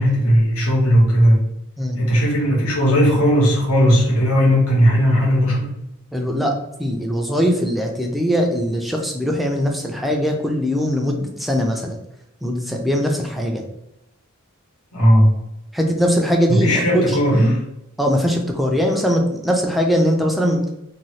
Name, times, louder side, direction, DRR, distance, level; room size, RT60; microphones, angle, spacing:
voice 1, 0.0-1.4 1.9-5.7 14.9-15.3 16.5-17.6, equal, 80° left, -5 dB, 1.3 m, -16 dB
voice 2, 6.1-12.0 12.4-13.6 15.7-17.6 18.0-20.6, equal, ahead, 1 dB, 0.4 m, -21 dB
2.7 x 2.7 x 3.1 m, 0.86 s
head